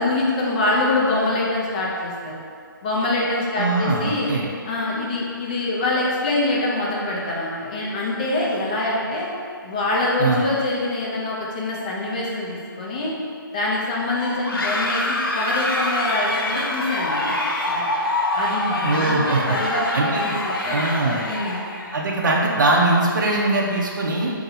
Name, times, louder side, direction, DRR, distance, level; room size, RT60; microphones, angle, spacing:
voice 1, 0.0-2.4 2.8-4.3 4.6-9.3 9.6-13.2 13.5-17.4 17.7-17.9 18.3-21.6, left 2 dB, 20° left, -4 dB, 0.4 m, -25 dB
voice 2, 3.6-4.5 10.2-10.5 18.8-19.6 19.9-20.4 20.7-21.2 21.9-24.3, right 2 dB, 60° right, -2 dB, 0.6 m, -21 dB
sound 1, 14.1-22.0, left 1 dB, 85° left, 0.6 m, -25 dB
2.7 x 2.7 x 3.9 m, 2.2 s
hypercardioid pair, 160°, 12 cm